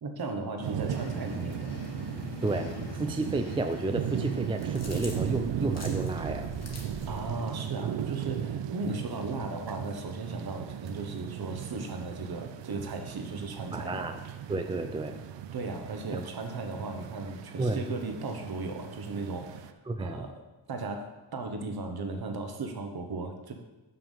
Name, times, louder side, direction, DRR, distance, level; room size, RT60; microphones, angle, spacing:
voice 1, 0.0-1.7 7.1-14.1 15.5-20.4 20.7-23.5, right 3 dB, 60° right, 5 dB, 1.1 m, -36 dB
sound 1, 0.6-19.7, right 10 dB, 80° right, 0.5 m, -37 dB
sound 2, 0.9-7.3, left 4 dB, 65° left, 0.9 m, -44 dB
voice 2, 2.4-6.5 13.7-14.2 14.5-15.2 17.6-17.8 19.9-20.3, right 2 dB, 15° right, 6 dB, 0.3 m, -31 dB
sound 3, 4.4-7.3, left 2 dB, 35° left, 1.5 m, -44 dB
6.9 x 5.9 x 5.5 m, 1.1 s
wide cardioid pair, 145°, 43 cm